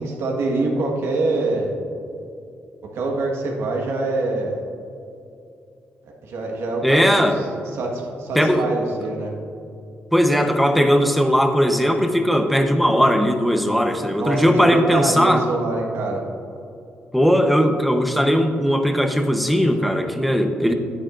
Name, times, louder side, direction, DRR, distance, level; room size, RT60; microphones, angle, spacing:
voice 1, 0.0-1.7 2.9-4.6 6.0-7.4 7.7-9.3 14.2-16.2, right 2 dB, 80° right, 0 dB, 1.6 m, -25 dB
voice 2, 6.8-7.4 8.3-8.7 10.1-15.4 17.1-20.7, equal, ahead, 5 dB, 0.9 m, -18 dB
10.0 x 9.8 x 2.6 m, 2.6 s
cardioid pair, 80°, 4 cm